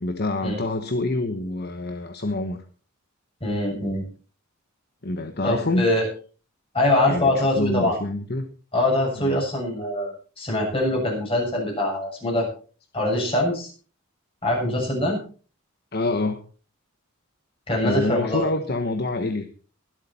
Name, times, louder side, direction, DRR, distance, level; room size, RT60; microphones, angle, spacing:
voice 1, 0.0-2.6 5.0-5.9 7.1-8.5 9.2-9.4 15.9-16.4 17.8-19.5, left 2 dB, 50° left, 7 dB, 1.1 m, -26 dB
voice 2, 3.4-4.0 5.4-6.1 6.7-8.0 8.7-12.5 12.9-13.7 14.4-15.2 17.7-18.5, left 1 dB, 25° left, -1 dB, 7.2 m, -23 dB
23.0 x 8.2 x 4.3 m, 0.40 s
head